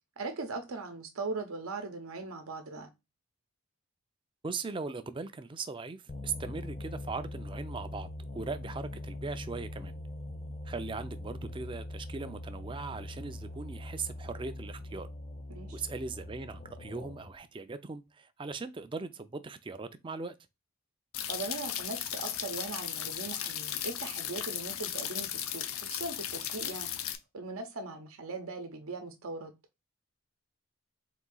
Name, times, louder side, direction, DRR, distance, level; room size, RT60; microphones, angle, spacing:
voice 1, 0.2-2.9 15.5-15.8 21.3-26.9 27.3-29.5, right 3 dB, 80° right, 0.8 m, -39 dB
voice 2, 4.4-9.9 10.6-15.1 15.7-20.3, right 4 dB, 25° right, 0.4 m, -39 dB
sound 1, 6.1-17.4, left 1 dB, 30° left, 0.6 m, -42 dB
sound 2, 21.1-27.1, left 10 dB, 75° left, 0.5 m, -36 dB
4.0 x 2.6 x 3.8 m
head